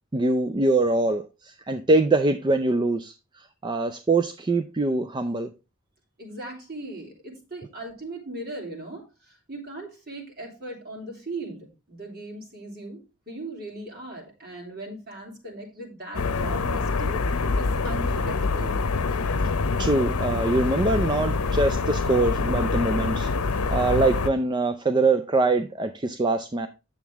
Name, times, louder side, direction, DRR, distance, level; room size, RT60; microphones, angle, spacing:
voice 1, 0.1-5.5 19.4-19.5 19.8-23.3 23.7-26.7, right 2 dB, 20° right, 0.4 m, -23 dB
voice 2, 6.2-13.0 13.3-17.2 17.5-18.8, right 2 dB, 45° right, 3.3 m, -38 dB
sound 1, 16.1-24.3, left 4 dB, 85° left, 0.7 m, -25 dB
9.0 x 7.2 x 3.4 m
head